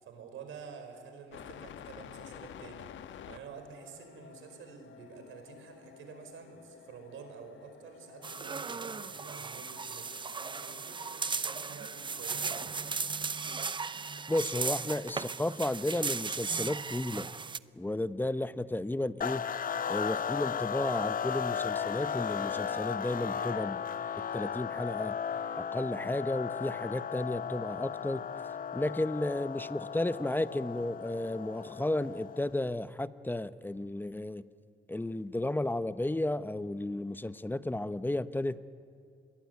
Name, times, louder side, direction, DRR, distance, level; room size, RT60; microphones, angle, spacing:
voice 1, 0.0-12.8, right 6 dB, 80° right, 6 dB, 5.1 m, -49 dB
sound 1, 1.3-16.8, left 9 dB, 75° left, 1.3 m, -53 dB
sound 2, 8.2-17.6, right 5 dB, 25° right, 0.6 m, -36 dB
voice 2, 14.3-17.3 17.7-19.5 19.9-23.8 24.2-25.2 25.6-28.2 28.7-34.4 34.9-38.6, left 1 dB, 10° left, 13 dB, 0.9 m, -33 dB
sound 3, 19.2-32.6, left 7 dB, 45° left, 0.8 m, -35 dB
28.0 x 21.5 x 9.4 m, 2.4 s
cardioid pair, 90°, 20 cm